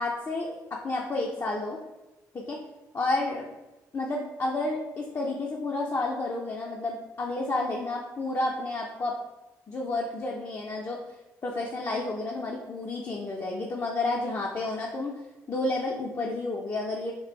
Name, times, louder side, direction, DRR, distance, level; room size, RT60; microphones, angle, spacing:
voice 1, 0.0-1.8 2.3-2.6 2.9-3.5 3.9-9.1 9.7-11.0 11.4-15.1 15.5-17.1, left 2 dB, 35° left, -2 dB, 0.7 m, -30 dB
3.3 x 2.5 x 4.2 m, 1.0 s
hypercardioid pair, 45°, 8 cm